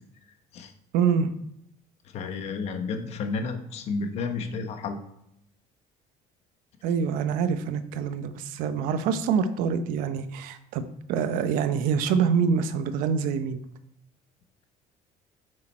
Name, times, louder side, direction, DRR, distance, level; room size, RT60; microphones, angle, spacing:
voice 1, 0.9-1.3 6.8-13.6, right 6 dB, 75° right, 10 dB, 0.8 m, -26 dB
voice 2, 2.1-5.0, left 4 dB, 45° left, 7 dB, 1.1 m, -31 dB
8.9 x 6.5 x 4.3 m, 0.76 s
cardioid pair, 160°, 15 cm